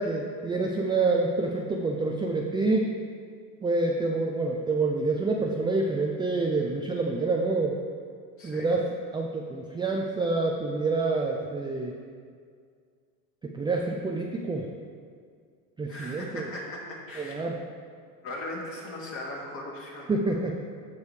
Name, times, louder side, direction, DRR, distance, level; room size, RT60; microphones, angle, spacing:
voice 1, 0.0-2.9 3.6-7.7 8.4-8.8 9.1-11.9 13.4-14.7 15.8-16.5 17.2-17.6 20.1-20.6, right 3 dB, 10° right, 0 dB, 0.4 m, -27 dB
voice 2, 8.4-8.7 15.9-17.4 18.2-20.1, left 1 dB, 35° left, -3 dB, 2.3 m, -38 dB
13.5 x 5.3 x 3.3 m, 2.1 s
supercardioid pair, 115°, 41 cm